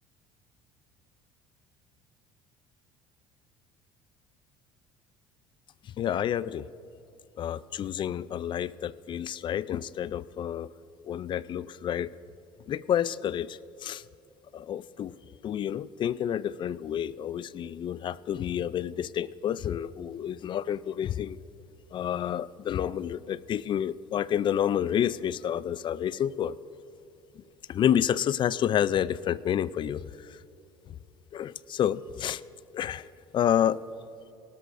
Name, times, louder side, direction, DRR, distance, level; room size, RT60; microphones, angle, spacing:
voice 1, 6.0-6.7 7.4-10.7 11.0-12.1 12.7-14.0 14.5-15.1 15.4-21.4 21.9-26.6 27.7-30.4 31.3-32.4 32.7-33.1 33.3-33.8, left 10 dB, 40° left, 18 dB, 0.4 m, -29 dB
18.0 x 12.5 x 2.6 m, 2.7 s
supercardioid pair, 90°, 12 cm